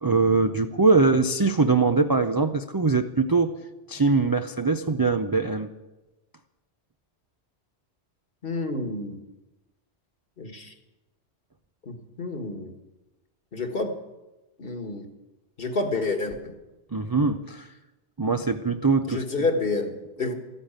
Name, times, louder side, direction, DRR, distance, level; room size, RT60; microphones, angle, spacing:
voice 1, 0.0-3.5 3.9-5.7 16.9-17.7 18.2-19.2, right 4 dB, 30° right, 6 dB, 0.4 m, -22 dB
voice 2, 8.4-9.2 10.4-10.7 11.8-12.7 13.5-14.0 14.6-15.1 15.6-16.5 19.1-20.3, left 3 dB, 50° left, 5 dB, 1.8 m, -29 dB
14.5 x 10.0 x 8.9 m, 1.1 s
omnidirectional pair, 1.2 m